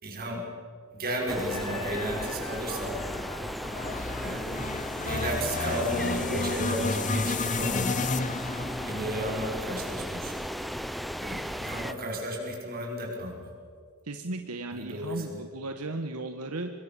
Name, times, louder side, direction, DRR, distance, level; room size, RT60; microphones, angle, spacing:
voice 1, 0.0-0.4 0.9-3.0 4.2-4.5 5.0-8.0 8.8-10.4 11.2-13.5 14.7-15.2, right 1 dB, 45° right, -1 dB, 6.0 m, -33 dB
Wind instrument woodwind instrument, 1.2-6.6, left 3 dB, 70° left, 4.4 m, -44 dB
sound 1, 1.3-11.9, equal, ahead, 0.7 m, -35 dB
sound 2, 1.9-10.2, left 3 dB, 35° left, 0.8 m, -33 dB
voice 2, 14.0-16.7, right 2 dB, 80° right, 6 dB, 1.4 m, -35 dB
25.5 x 22.0 x 7.1 m, 2.2 s
head